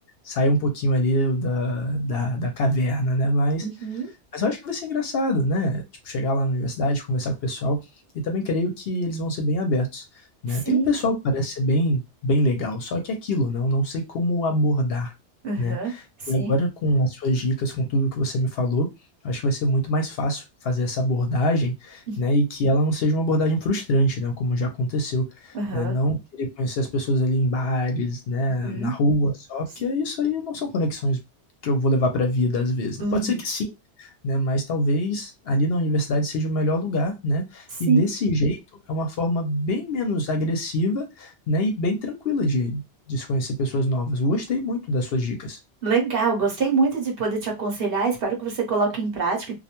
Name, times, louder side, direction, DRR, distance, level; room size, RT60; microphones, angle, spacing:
voice 1, 0.2-3.7 4.3-7.8 8.1-10.0 10.4-15.1 15.6-16.0 16.3-18.9 19.2-31.2 31.6-33.7 34.0-38.6 38.9-42.8 43.1-45.6, equal, 65° left, 4 dB, 0.7 m, -24 dB
voice 2, 3.6-4.1 10.5-10.9 15.4-15.9 16.2-16.5 25.5-26.0 28.6-28.9 33.0-33.4 37.9-38.0 45.8-49.5, right 4 dB, 55° right, 0 dB, 0.9 m, -24 dB
2.4 x 2.1 x 2.9 m, 0.24 s
omnidirectional pair, 1.2 m